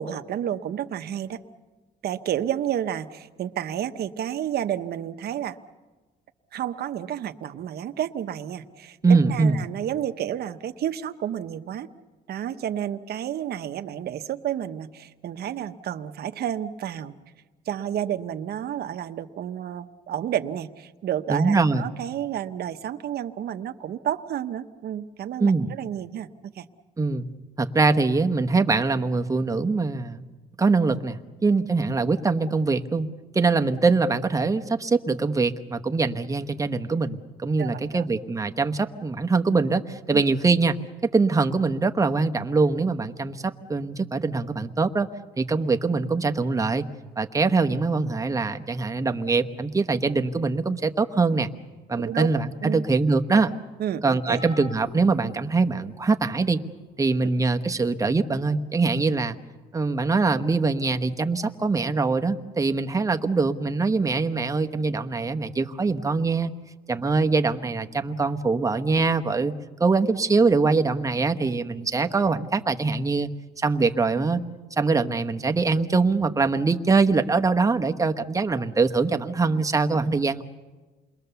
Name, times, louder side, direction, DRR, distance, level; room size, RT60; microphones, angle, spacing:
voice 1, 0.0-1.4 2.0-5.6 6.5-9.0 9.3-11.9 12.3-17.1 17.7-26.6 37.6-38.1 40.1-40.2 52.0-52.3 52.6-52.8 53.8-54.4, right 10 dB, 60° right, 8 dB, 1.0 m, -30 dB
voice 2, 9.0-9.6 21.3-21.9 25.4-25.7 27.0-27.3 27.6-30.3 30.6-33.1 33.3-40.8 41.1-45.1 45.4-46.9 47.2-51.5 51.9-53.5 54.0-56.6 57.0-59.4 59.7-66.5 66.9-69.5 69.8-73.3 73.6-74.4 74.8-80.4, right 4 dB, 20° right, 6 dB, 1.0 m, -23 dB
sound 1, 54.3-56.1 56.9-57.1 58.4-58.5, left 1 dB, 80° left, 4.1 m, -44 dB
28.5 x 21.5 x 6.9 m, 1.3 s
cardioid pair, 125°, 18 cm